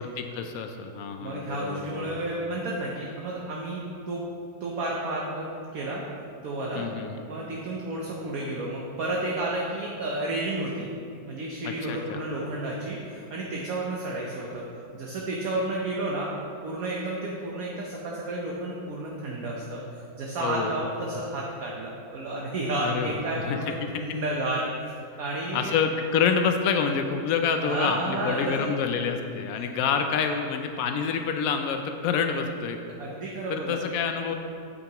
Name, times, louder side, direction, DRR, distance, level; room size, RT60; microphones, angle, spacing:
voice 1, 0.0-2.1 6.7-7.2 11.6-12.2 20.4-20.7 22.8-23.1 23.4-23.9 25.5-32.8 33.5-34.3, left 6 dB, 90° left, 6 dB, 0.7 m, -27 dB
voice 2, 1.2-4.2 4.6-6.0 6.4-6.9 7.3-10.9 11.2-14.6 14.9-16.3 16.6-24.7 25.2-25.7 27.6-28.7 33.0-33.8, right 2 dB, 55° right, -3 dB, 1.2 m, -31 dB
9.0 x 8.1 x 2.9 m, 2.5 s
omnidirectional pair, 2.0 m